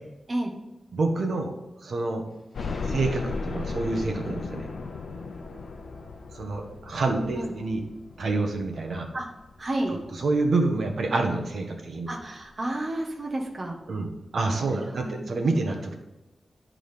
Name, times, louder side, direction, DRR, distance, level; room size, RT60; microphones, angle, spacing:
voice 1, 0.9-1.5 1.8-2.3 2.9-4.7 6.3-7.8 8.2-9.1 10.2-12.1 13.9-15.9, right 3 dB, 70° right, 3 dB, 1.3 m, -27 dB
sound 1, 2.3-9.5, left 1 dB, 5° left, 3.2 m, -46 dB
sound 2, 2.5-11.5 11.9-12.0 12.4-12.5 13.7-13.8 14.1-14.2, left 4 dB, 75° left, 0.6 m, -37 dB
voice 2, 9.6-10.0 12.1-13.8 14.7-15.3, right 1 dB, 35° right, 0 dB, 1.4 m, -31 dB
11.0 x 3.8 x 5.1 m, 1.0 s
wide cardioid pair, 120°, 0 cm